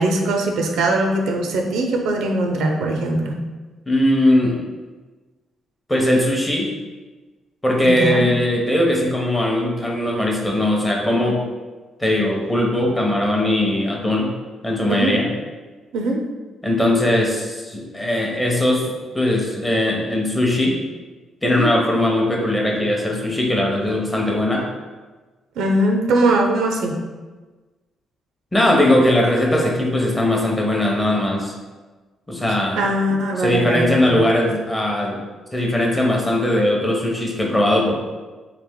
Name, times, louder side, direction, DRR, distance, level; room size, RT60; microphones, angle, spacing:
voice 1, 0.0-3.3 7.8-8.3 14.9-15.2 15.9-16.2 21.4-21.7 25.6-27.0 32.8-34.2, right 1 dB, 85° right, 3 dB, 0.5 m, -21 dB
voice 2, 3.9-4.6 5.9-6.7 7.6-11.4 12.0-14.3 14.6-15.3 16.6-20.8 21.4-24.6 28.5-31.5 32.3-32.8 33.4-35.2 35.5-37.9, left 1 dB, 10° left, -1 dB, 0.7 m, -19 dB
3.3 x 3.2 x 3.6 m, 1.3 s
cardioid pair, 135°, 0 cm